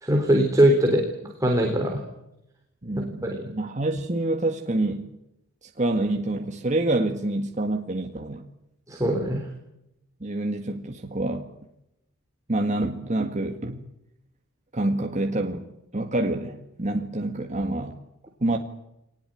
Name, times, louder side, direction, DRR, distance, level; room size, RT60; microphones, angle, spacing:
voice 1, 0.0-1.0 1.4-2.0 3.4-3.5 8.9-9.4, right 1 dB, 15° right, 1 dB, 3.8 m, -21 dB
voice 2, 2.8-5.0 5.8-8.5 10.2-11.5 12.5-13.8 14.7-15.6 15.9-17.9 18.4-18.6, right 2 dB, 35° right, 3 dB, 1.8 m, -27 dB
23.0 x 20.0 x 9.1 m, 0.85 s
head